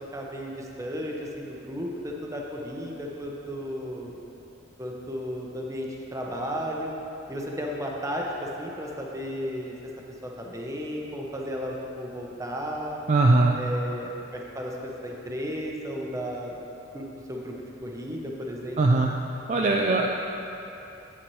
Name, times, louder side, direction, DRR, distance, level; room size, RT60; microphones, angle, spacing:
voice 1, 0.0-4.1 4.8-6.9 7.3-9.8 10.2-13.0 13.6-16.7 16.9-17.5 17.8-18.8, equal, 15° right, -1 dB, 0.8 m, -34 dB
voice 2, 13.1-13.6 18.8-19.1 19.5-20.1, right 2 dB, 35° right, 0 dB, 0.4 m, -20 dB
8.8 x 8.5 x 3.2 m, 3.0 s
head